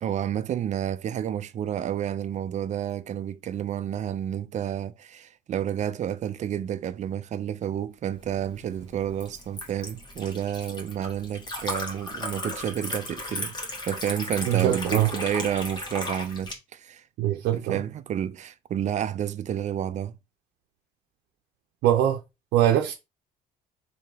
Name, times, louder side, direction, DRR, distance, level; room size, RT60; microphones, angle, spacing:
voice 1, 0.0-13.5 13.9-17.0 17.5-20.2, right 10 dB, 45° right, 0.5 m, -30 dB
Liquid, 8.2-16.5, left 2 dB, 25° left, 1.6 m, -36 dB
voice 2, 14.5-15.1 17.2-17.8 21.8-22.2 22.5-22.9, right 12 dB, 80° right, 0.7 m, -22 dB
3.6 x 2.8 x 4.7 m
cardioid pair, 110°, 17 cm